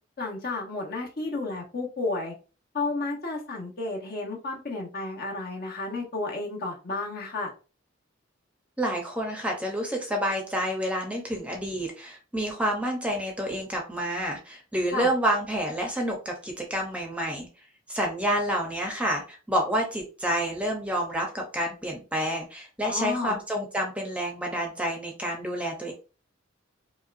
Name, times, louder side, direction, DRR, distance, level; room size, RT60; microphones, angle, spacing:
voice 1, 0.2-2.3 2.7-7.5 14.9-15.1 22.9-23.4, left 3 dB, 50° left, -1 dB, 1.1 m, -32 dB
voice 2, 8.8-17.5 17.9-25.9, equal, 5° right, 1 dB, 0.7 m, -29 dB
5.3 x 2.3 x 2.5 m, 0.34 s
head